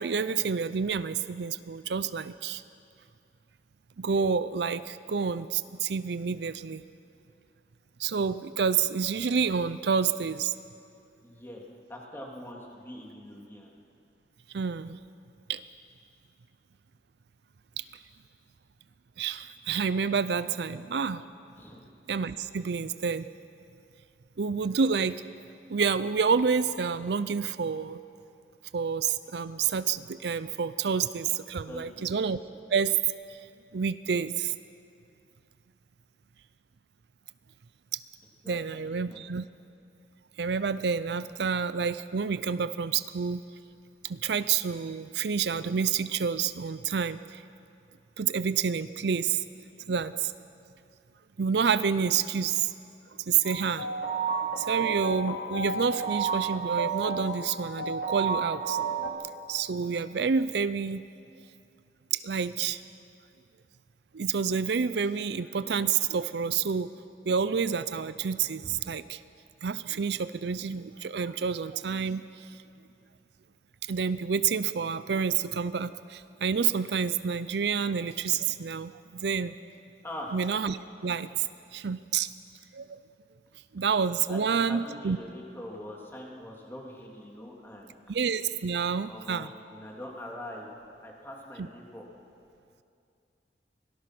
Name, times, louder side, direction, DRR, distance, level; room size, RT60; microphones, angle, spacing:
voice 1, 0.0-2.6 4.0-6.8 8.0-10.5 14.5-15.0 15.5-15.6 17.8-17.9 19.2-21.2 22.1-23.3 24.4-25.2 25.7-28.0 28.7-32.4 32.7-32.9 33.3-33.4 33.7-34.5 38.5-39.5 40.4-43.4 44.0-47.4 48.2-49.4 49.9-50.3 51.4-52.7 53.3-53.9 54.6-59.2 59.5-61.0 62.1-62.8 64.1-66.9 67.2-69.2 69.6-72.5 73.9-79.6 80.3-80.8 81.0-82.3 82.7-83.0 83.7-85.2 88.1-89.5, right 6 dB, 65° right, 14 dB, 0.5 m, -28 dB
voice 2, 11.2-11.6 11.9-13.7 21.6-21.9 31.6-32.1 32.4-32.6 38.4-39.2 80.0-80.4 84.3-88.0 89.1-90.7 91.0-92.0, left 1 dB, 15° left, -2 dB, 2.7 m, -43 dB
sound 1, 53.4-59.1, right 5 dB, 85° left, 2.5 m, -31 dB
24.0 x 18.5 x 6.1 m, 2.5 s
head